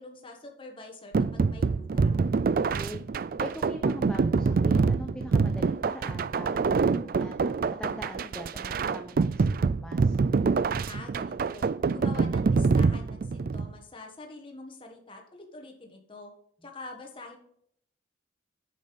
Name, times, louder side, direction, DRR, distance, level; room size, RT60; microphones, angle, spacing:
voice 1, 0.0-2.2 10.8-16.3 16.6-17.4, left 2 dB, 25° left, 2 dB, 1.5 m, -45 dB
sound 1, 1.1-13.7, right 4 dB, 45° right, 0.3 m, -26 dB
voice 2, 2.7-10.2, equal, 5° left, 4 dB, 0.7 m, -43 dB
8.6 x 6.6 x 5.2 m, 0.67 s
head